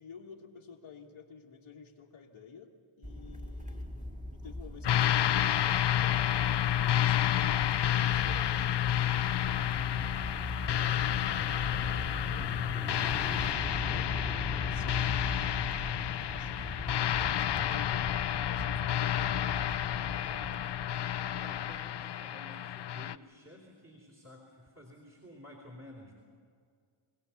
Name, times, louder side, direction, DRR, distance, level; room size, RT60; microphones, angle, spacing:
voice 1, 0.0-6.7 6.9-8.9 10.8-11.8 12.3-12.5 13.8-14.1 14.6-15.1 16.3-20.5, left 6 dB, 85° left, -4 dB, 1.6 m, -52 dB
sound 1, 3.0-22.0, equal, 15° right, 2.1 m, -40 dB
sound 2, 4.8-23.2, left 11 dB, 55° left, 0.6 m, -30 dB
voice 2, 9.3-10.3 10.7-12.5 21.4-26.2, equal, 30° right, 0 dB, 3.5 m, -52 dB
24.0 x 16.5 x 7.0 m, 2.1 s
cardioid pair, 55°, 49 cm